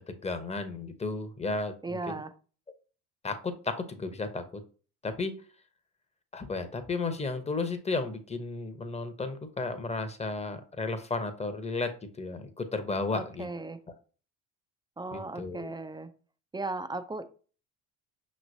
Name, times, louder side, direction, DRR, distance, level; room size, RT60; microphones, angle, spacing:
voice 1, 0.1-2.2 3.2-4.6 5.0-5.3 6.3-11.9 12.2-13.5 15.1-15.8, left 3 dB, 15° left, 8 dB, 0.9 m, -33 dB
voice 2, 1.8-2.3 13.1-13.8 15.0-16.1 16.5-17.2, right 3 dB, 10° right, 9 dB, 0.4 m, -36 dB
5.8 x 3.2 x 2.7 m, 0.38 s
hypercardioid pair, 65°, 37 cm